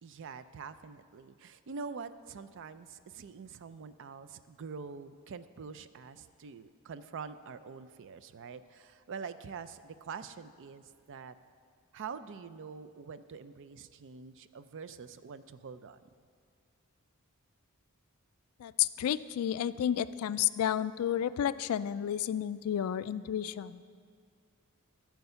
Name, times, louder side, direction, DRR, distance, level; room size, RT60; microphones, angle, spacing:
voice 1, 0.0-11.4 11.9-16.0, right 5 dB, 60° right, 13 dB, 0.4 m, -45 dB
voice 2, 18.6-23.8, left 10 dB, 70° left, 15 dB, 0.3 m, -31 dB
14.0 x 4.7 x 6.8 m, 2.1 s
head